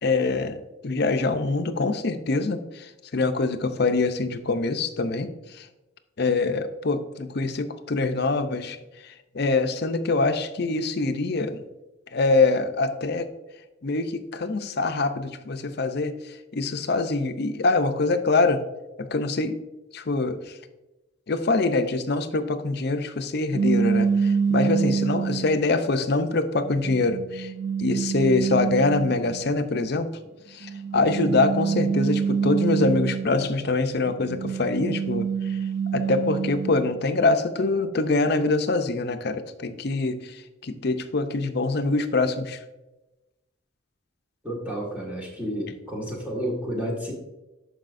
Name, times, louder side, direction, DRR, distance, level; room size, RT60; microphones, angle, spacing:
voice 1, 0.0-5.7 6.2-8.8 9.0-11.6 12.1-13.3 13.8-18.6 19.0-19.6 19.9-20.6 21.3-27.5 27.8-30.1 30.5-35.6 35.9-42.6, left 3 dB, 55° left, 8 dB, 0.6 m, -24 dB
sound 1, 23.5-25.7 26.4-29.5 30.6-33.6 34.0-37.0, right 6 dB, 70° right, 0.4 m, -26 dB
voice 2, 44.4-47.1, equal, 5° right, -3 dB, 1.6 m, -31 dB
12.0 x 4.8 x 2.6 m, 1.0 s
head